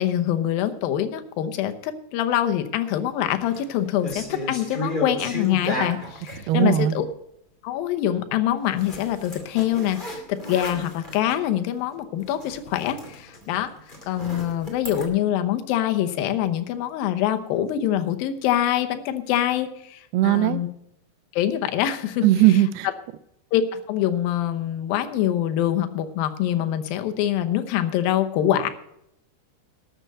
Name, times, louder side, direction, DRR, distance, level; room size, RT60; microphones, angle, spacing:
voice 1, 0.0-7.1 7.6-13.7 14.1-20.7 21.3-22.2 23.5-28.7, left 11 dB, 70° left, 8 dB, 2.5 m, -24 dB
sound 1, 3.4-3.6 4.0-6.5 8.8-11.4 11.8-11.9 12.2-15.1, left 1 dB, 15° left, 1.6 m, -33 dB
voice 2, 6.5-7.0 20.1-20.6 22.2-22.9, right 14 dB, 80° right, 14 dB, 2.5 m, -18 dB
13.0 x 6.8 x 7.7 m, 0.77 s
omnidirectional pair, 4.8 m